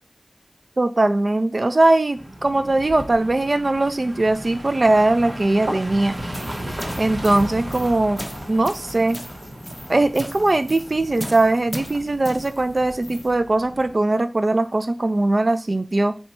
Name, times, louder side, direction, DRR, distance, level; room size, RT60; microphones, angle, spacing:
voice 1, 0.8-6.2 7.0-9.2 9.9-16.2, right 2 dB, 55° right, 10 dB, 0.3 m, -20 dB
sound 1, 2.1-14.0, right 1 dB, 75° right, 1.1 m, -35 dB
sound 2, 6.1-13.3, equal, 5° left, 0.5 m, -38 dB
2.8 x 2.2 x 4.1 m, 0.34 s
wide cardioid pair, 60°, 0 cm